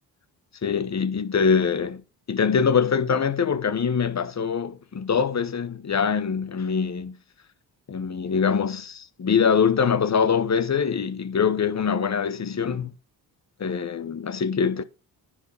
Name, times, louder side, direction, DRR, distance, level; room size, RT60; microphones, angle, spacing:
voice 1, 0.6-2.0 2.3-7.1 7.9-12.9 13.6-14.8, left 6 dB, 35° left, 1.1 m, -23 dB
10.0 x 4.7 x 5.6 m
supercardioid pair, 50°, 44 cm